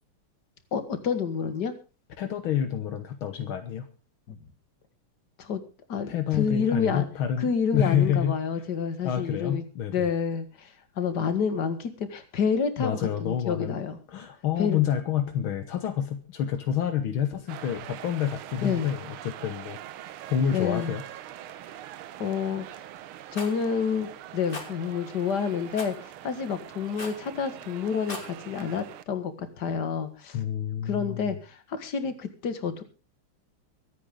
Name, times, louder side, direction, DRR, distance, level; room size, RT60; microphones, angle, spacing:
voice 1, 0.7-1.7 4.3-4.4 5.4-5.6 5.9-7.1 7.4-9.6 9.9-14.0 14.6-14.8 18.6-18.9 20.5-20.9 22.2-22.8 23.3-30.4 30.9-32.8, left 6 dB, 50° left, 10 dB, 2.3 m, -29 dB
voice 2, 2.2-3.9 6.1-8.4 9.0-10.1 12.8-13.8 14.1-19.8 20.3-21.0 30.3-31.3, left 9 dB, 70° left, 8 dB, 2.0 m, -28 dB
sound 1, 17.5-29.0, right 12 dB, 75° right, 1.7 m, -43 dB
Rattle, 23.3-23.6 24.5-24.7 25.8-26.0 27.0-27.2 27.9-28.3, left 2 dB, 25° left, 2.9 m, -38 dB
24.0 x 9.3 x 3.7 m, 0.32 s
omnidirectional pair, 2.4 m